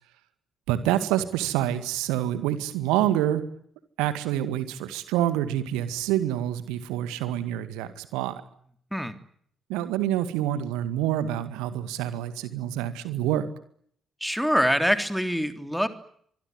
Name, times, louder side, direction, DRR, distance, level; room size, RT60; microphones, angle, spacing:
voice 1, 0.7-3.4 4.0-8.4 9.7-13.5, right 12 dB, 65° right, 12 dB, 2.0 m, -27 dB
voice 2, 14.2-15.9, equal, ahead, 8 dB, 3.4 m, -24 dB
26.0 x 22.0 x 9.6 m, 0.65 s
figure-of-eight pair, 45°, 0 cm